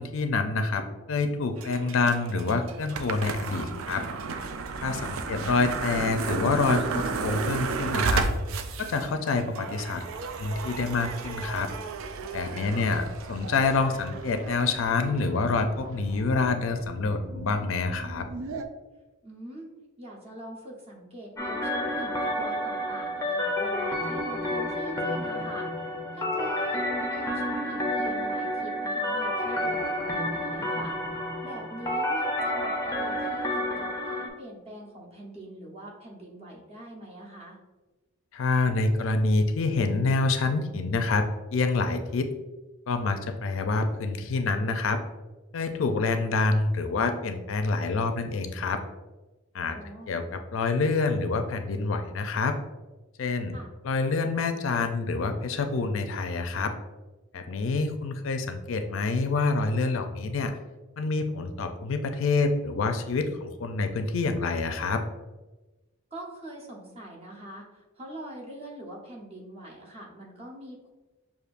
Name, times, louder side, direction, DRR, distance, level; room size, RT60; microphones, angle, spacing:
voice 1, 0.0-4.0 4.8-8.3 8.8-10.0 10.4-11.7 12.3-18.3 38.3-41.2 41.5-42.3 42.9-45.0 45.5-48.8 49.5-49.8 50.1-52.5 53.2-53.6 53.8-56.7 57.3-60.5 61.0-65.0, left 3 dB, 75° left, 7 dB, 0.4 m, -27 dB
sound 1, 1.6-18.6, right 4 dB, 85° right, 0.4 m, -34 dB
voice 2, 5.1-5.5 12.6-12.9 19.2-19.7 20.0-25.7 26.1-30.9 31.4-37.6 49.7-50.1 53.5-53.7 66.1-70.9, right 1 dB, 30° right, -2 dB, 0.9 m, -43 dB
sound 2, 21.4-34.3, left 1 dB, 15° left, 0.5 m, -30 dB
6.5 x 2.5 x 2.5 m, 1.1 s
head